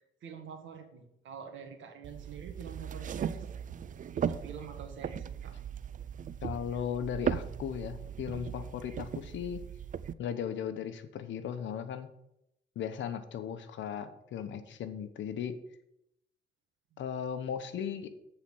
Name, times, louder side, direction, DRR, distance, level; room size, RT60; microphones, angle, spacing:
voice 1, 0.2-3.5 4.1-5.5, right 7 dB, 75° right, 5 dB, 1.7 m, -46 dB
sound 1, 2.0-10.1, right 8 dB, 40° right, 0.4 m, -38 dB
voice 2, 6.4-9.6 10.2-12.1 12.8-15.6 17.0-18.1, left 8 dB, 70° left, 10 dB, 0.9 m, -37 dB
8.3 x 4.4 x 7.2 m, 0.80 s
cardioid pair, 90°, 20 cm